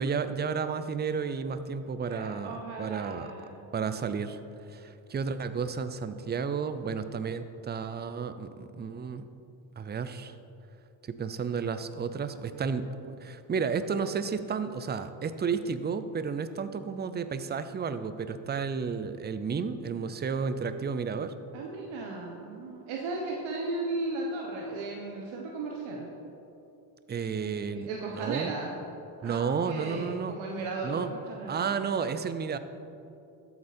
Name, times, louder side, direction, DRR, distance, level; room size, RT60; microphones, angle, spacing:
voice 1, 0.0-4.4 4.7-9.2 9.8-10.4 11.0-21.3 27.1-28.5 29.2-30.4 30.8-31.1 31.5-32.6, right 6 dB, 20° right, 11 dB, 0.5 m, -32 dB
voice 2, 2.1-3.6 21.5-26.1 27.2-28.7 29.2-31.8, right 3 dB, 70° right, -1 dB, 1.5 m, -36 dB
13.0 x 8.1 x 4.4 m, 2.8 s
cardioid pair, 100°, 48 cm